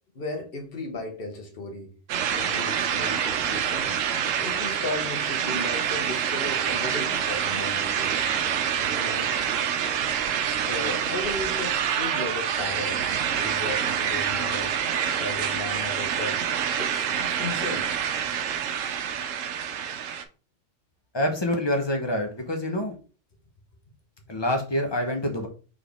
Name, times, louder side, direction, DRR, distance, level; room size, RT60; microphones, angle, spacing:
voice 1, 0.1-1.9 2.3-8.1 8.8-9.3 10.5-14.8 15.2-16.4 16.8-17.9, left 2 dB, 50° left, 4 dB, 1.3 m, -35 dB
sound 1, 2.1-20.2, right 8 dB, 85° right, 1.0 m, -27 dB
voice 2, 21.1-23.0 24.3-25.5, left 1 dB, 25° left, 3 dB, 0.9 m, -26 dB
4.2 x 3.7 x 3.4 m, 0.36 s
omnidirectional pair, 1.3 m